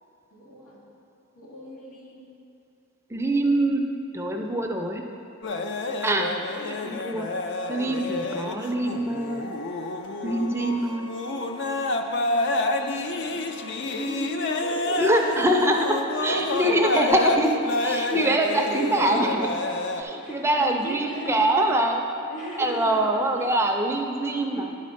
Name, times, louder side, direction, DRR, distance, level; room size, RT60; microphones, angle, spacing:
voice 1, 0.3-0.8 1.4-2.3 6.6-7.0 12.0-12.5 12.8-15.3 16.2-17.0 17.3-17.4 18.3-19.0 19.6-21.8 22.3-23.7 24.3-24.7, right 1 dB, 85° left, -6 dB, 2.2 m, -38 dB
voice 2, 3.1-3.8 4.1-5.0 6.0-6.3 6.7-7.3 7.7-9.4 10.2-11.1 15.0-17.5 17.8-19.6 20.0-22.1 22.6-24.7, right 1 dB, 10° right, 2 dB, 0.4 m, -24 dB
sound 1, 5.4-20.0, left 2 dB, 55° left, 0.5 m, -29 dB
9.8 x 4.2 x 6.3 m, 2.8 s
head